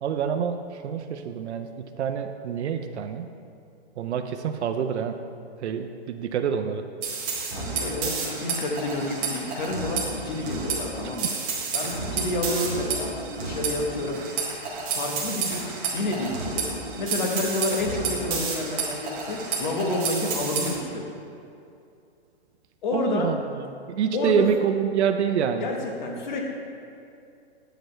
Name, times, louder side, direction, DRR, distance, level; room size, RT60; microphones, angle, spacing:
voice 1, 0.0-3.3 4.0-5.2 5.6-6.8 22.9-23.4 23.9-25.7, right 8 dB, 85° right, 6 dB, 0.6 m, -26 dB
sound 1, 7.0-20.7, right 4 dB, 15° right, 0.7 m, -30 dB
voice 2, 7.5-11.3 11.7-13.1 13.4-14.2 14.9-15.7 15.9-16.6 17.0-21.0 22.8-23.3 24.1-24.5 25.6-26.4, left 2 dB, 45° left, 1 dB, 1.1 m, -29 dB
9.0 x 6.5 x 3.2 m, 2.5 s
hypercardioid pair, 170°, 33 cm